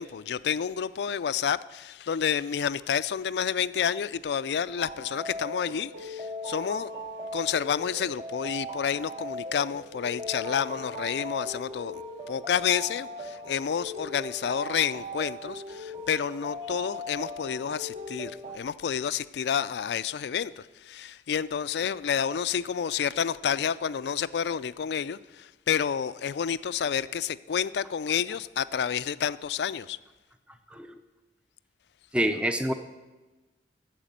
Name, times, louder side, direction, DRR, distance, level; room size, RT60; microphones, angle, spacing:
voice 1, 0.0-6.9 7.3-12.0 12.3-30.0, left 8 dB, 65° left, 0.4 m, -29 dB
sound 1, 4.8-18.6, left 1 dB, 35° right, 0.8 m, -39 dB
voice 2, 32.1-32.7, right 1 dB, 5° right, 0.5 m, -26 dB
9.2 x 7.4 x 8.7 m
head